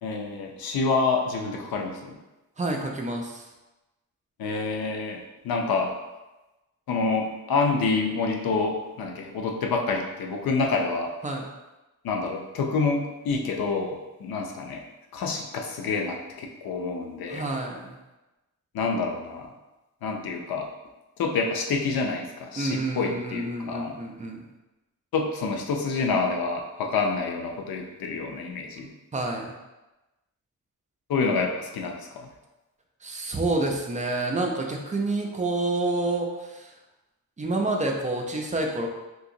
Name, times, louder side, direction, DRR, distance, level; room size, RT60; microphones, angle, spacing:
voice 1, 0.0-2.2 4.4-5.9 6.9-11.1 12.0-14.8 15.1-17.5 18.7-19.5 20.0-20.7 21.2-24.0 25.1-28.9 31.1-32.3, left 4 dB, 85° left, 2 dB, 0.5 m, -27 dB
voice 2, 2.6-3.5 11.2-11.5 17.3-18.0 22.5-24.4 29.1-29.6 33.0-36.7 37.4-38.9, right 2 dB, 20° right, 1 dB, 0.4 m, -28 dB
3.9 x 2.8 x 2.6 m, 1.0 s
wide cardioid pair, 150°, 35 cm